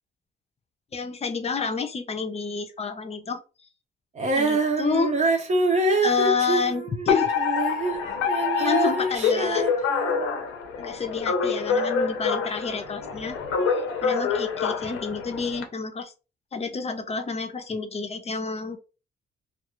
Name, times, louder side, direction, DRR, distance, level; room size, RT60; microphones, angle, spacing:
voice 1, 0.9-3.4 4.3-5.2 6.0-7.3 8.6-9.6 10.8-13.4 14.0-16.1 16.5-18.8, left 5 dB, 30° left, 7 dB, 0.6 m, -29 dB
Female singing, 4.2-8.0 8.3-10.4, right 3 dB, 35° right, 0.7 m, -25 dB
Alarm, 7.1-15.6, left 5 dB, 85° left, 0.6 m, -26 dB
2.3 x 2.3 x 3.0 m, 0.32 s
cardioid pair, 90°, 20 cm